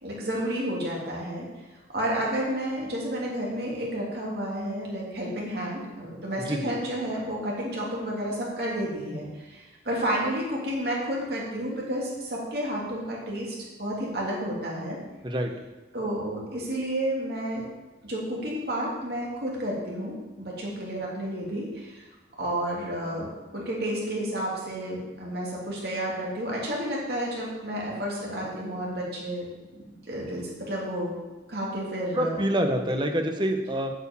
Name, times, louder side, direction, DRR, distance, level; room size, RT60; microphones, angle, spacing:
voice 1, 0.0-1.5 1.9-15.0 15.9-17.7 18.0-22.0 22.4-29.5 29.7-31.1 31.5-32.4, right 1 dB, 60° right, -4 dB, 3.0 m, -31 dB
voice 2, 6.4-6.8 15.2-15.5 32.1-33.9, equal, 25° right, 4 dB, 1.0 m, -26 dB
8.4 x 6.5 x 7.4 m, 1.2 s
head